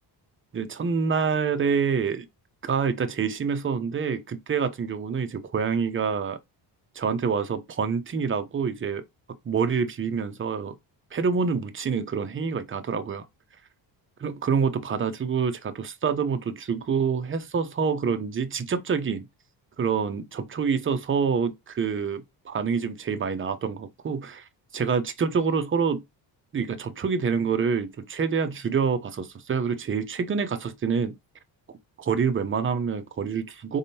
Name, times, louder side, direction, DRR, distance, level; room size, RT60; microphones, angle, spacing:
voice 1, 0.5-2.3 2.6-6.4 7.0-9.0 9.4-10.7 11.1-13.3 14.2-19.3 19.8-24.4 24.7-26.0 26.5-31.1 32.0-33.8, right 6 dB, 30° right, 0.7 m, -27 dB
4.3 x 3.6 x 2.8 m
cardioid pair, 120°, 43 cm